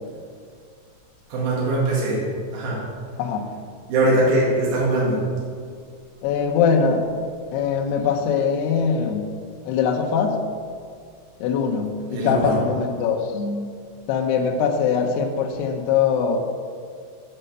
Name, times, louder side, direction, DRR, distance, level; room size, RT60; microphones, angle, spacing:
voice 1, 1.3-2.2 2.5-2.8 3.9-5.3 12.1-12.6, right 1 dB, 55° right, -6 dB, 3.5 m, -21 dB
voice 2, 3.2-3.5 6.2-7.0 7.5-9.3 9.7-10.4 11.4-13.7 14.1-16.4, left 6 dB, 80° left, 1 dB, 2.4 m, -22 dB
8.8 x 5.6 x 6.6 m, 2.1 s
omnidirectional pair, 5.8 m